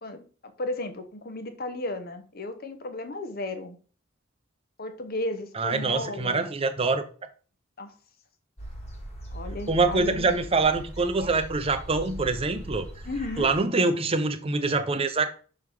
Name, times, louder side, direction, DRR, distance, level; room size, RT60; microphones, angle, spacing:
voice 1, 0.0-3.8 4.8-6.5 7.8-7.9 9.3-10.3 13.0-13.5, left 2 dB, 50° left, 0.9 m, -34 dB
voice 2, 5.6-7.0 9.7-12.9 13.4-15.3, right 3 dB, 30° right, 0.6 m, -25 dB
sound 1, 8.6-13.6, right 1 dB, 30° left, 1.5 m, -40 dB
6.1 x 3.5 x 4.8 m
head